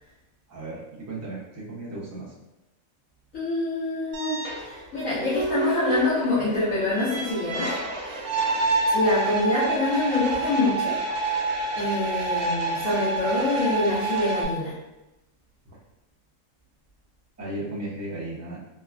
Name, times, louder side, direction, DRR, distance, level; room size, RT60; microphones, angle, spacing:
voice 1, 0.5-2.3 17.4-18.6, right 2 dB, 20° right, -7 dB, 0.4 m, -35 dB
voice 2, 3.3-7.7 8.0-8.2 8.9-11.0 11.8-14.7, left 2 dB, 70° left, -11 dB, 1.2 m, -26 dB
sound 1, 4.1-14.5, right 3 dB, 75° right, 1.1 m, -28 dB
3.4 x 2.2 x 2.3 m, 0.98 s
omnidirectional pair, 1.5 m